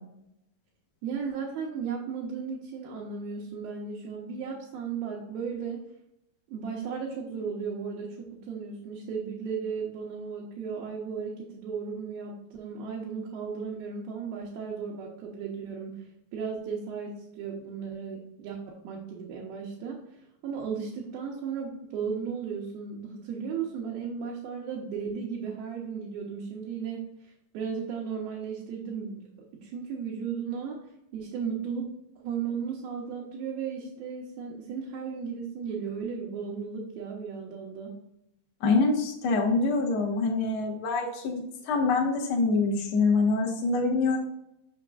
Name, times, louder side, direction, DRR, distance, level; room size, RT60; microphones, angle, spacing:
voice 1, 1.0-5.8 6.5-16.0 16.3-20.0 20.4-29.3 29.6-30.8 31.1-31.9 32.2-37.9, right 6 dB, 80° right, -3 dB, 2.8 m, -35 dB
voice 2, 38.6-44.2, left 3 dB, 75° left, -1 dB, 1.2 m, -25 dB
6.4 x 6.4 x 2.4 m, 0.81 s
omnidirectional pair, 4.4 m